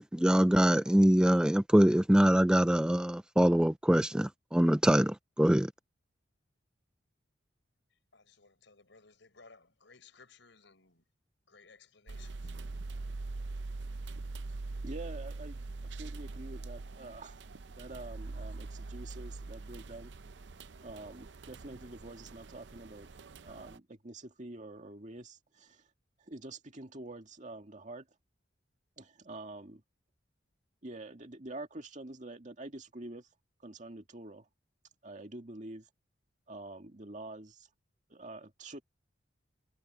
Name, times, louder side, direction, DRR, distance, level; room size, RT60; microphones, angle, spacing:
voice 1, 0.0-5.7, equal, 5° right, 0.3 m, -24 dB
voice 2, 8.1-11.0 11.5-12.5, left 4 dB, 75° left, 5.0 m, -59 dB
sound 1, 12.1-23.8, right 3 dB, 65° right, 0.6 m, -43 dB
voice 3, 14.8-17.4 17.8-20.1 20.8-23.1 23.4-25.9 26.2-28.1 29.0-29.8 30.8-33.3 33.6-34.5 35.0-35.9 36.5-37.7 38.1-38.8, right 2 dB, 40° right, 2.1 m, -46 dB
head